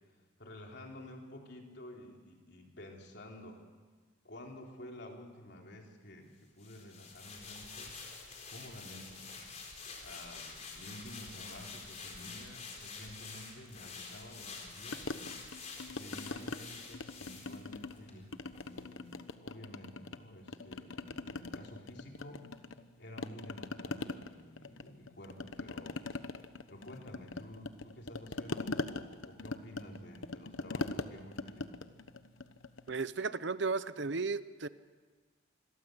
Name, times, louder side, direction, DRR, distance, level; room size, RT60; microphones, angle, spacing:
voice 1, 0.4-3.6 4.2-8.0 8.5-9.5 10.0-15.3 15.9-22.5 23.0-26.0 26.7-31.8, left 1 dB, 55° left, 1 dB, 3.8 m, -51 dB
sound 1, 6.6-18.2 18.5-18.7, left 4 dB, 35° left, 4.2 m, -48 dB
sound 2, 14.9-16.6 16.9-18.0 18.3-20.2 20.5-22.9 23.2-33.0, left 3 dB, 75° left, 1.1 m, -41 dB
voice 2, 32.9-34.7, right 4 dB, 60° right, 15 dB, 0.8 m, -34 dB
26.5 x 22.0 x 8.0 m, 1.4 s
head